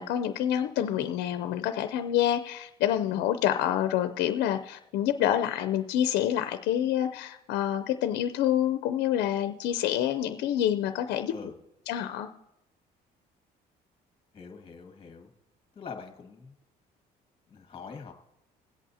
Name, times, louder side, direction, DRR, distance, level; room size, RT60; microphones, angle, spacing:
voice 1, 0.0-11.3 11.9-12.3, left 11 dB, 80° left, 9 dB, 0.6 m, -27 dB
voice 2, 14.3-15.3 15.8-16.5 17.5-18.1, left 5 dB, 30° left, 3 dB, 2.0 m, -44 dB
21.0 x 8.3 x 2.8 m, 0.89 s
cardioid pair, 110°, 17 cm